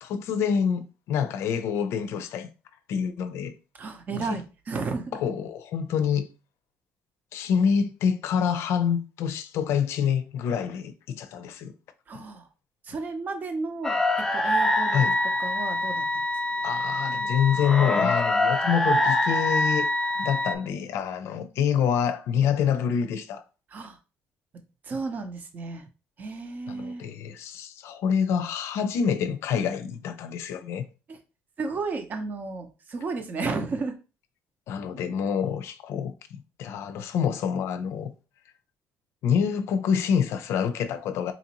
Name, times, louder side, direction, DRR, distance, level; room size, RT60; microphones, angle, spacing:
voice 1, 0.0-2.5 2.9-3.6 4.3-4.4 5.1-6.3 7.3-11.7 12.1-12.2 14.9-15.2 16.6-19.9 20.2-23.4 26.7-30.9 34.7-38.1 39.2-41.3, left 7 dB, 65° left, 0.5 m, -26 dB
voice 2, 3.8-5.2 12.1-12.5 12.8-14.0 14.3-15.0 15.4-16.0 23.7-24.0 24.8-25.8 26.2-27.1 31.1-31.2 31.6-33.9, right 4 dB, 35° right, 0.7 m, -33 dB
sound 1, 13.8-20.5, left 2 dB, 10° left, 0.4 m, -25 dB
4.0 x 2.6 x 2.9 m
cardioid pair, 130°, 5 cm